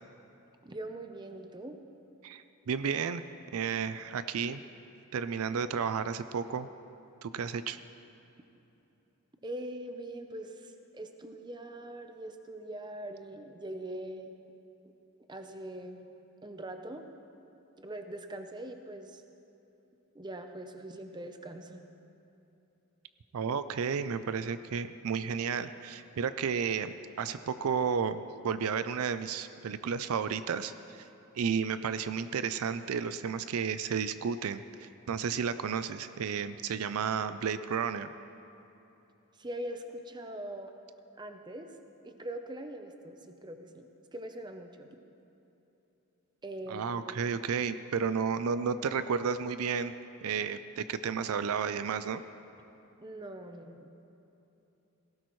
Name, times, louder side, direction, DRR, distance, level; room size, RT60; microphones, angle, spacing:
voice 1, 0.6-1.8 9.4-14.3 14.8-14.9 15.3-16.1 16.4-17.1 17.8-19.2 20.1-21.8 39.4-40.7 41.2-41.7 42.0-45.0 46.4-47.2 53.0-53.9, right 1 dB, 20° right, 6 dB, 0.7 m, -42 dB
voice 2, 2.2-3.2 3.5-4.6 5.1-6.7 7.2-7.8 23.3-31.0 31.3-38.1 46.7-49.9 50.2-52.2, right 6 dB, 75° right, 12 dB, 0.4 m, -32 dB
18.5 x 17.0 x 3.2 m, 3.0 s
head